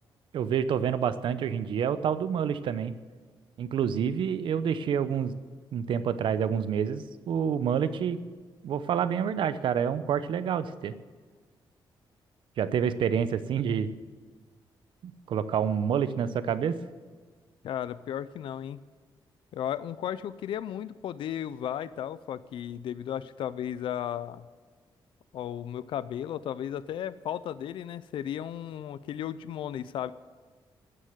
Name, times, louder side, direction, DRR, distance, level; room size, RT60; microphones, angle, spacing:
voice 1, 0.3-3.0 3.6-5.3 5.7-8.2 8.6-10.9 12.6-13.9 15.0-16.8, right 8 dB, 70° right, 13 dB, 0.7 m, -28 dB
voice 2, 17.6-18.8 19.5-24.5 25.3-30.1, left 10 dB, 70° left, 15 dB, 0.4 m, -35 dB
15.0 x 6.5 x 9.3 m, 1.5 s
wide cardioid pair, 160°, 9 cm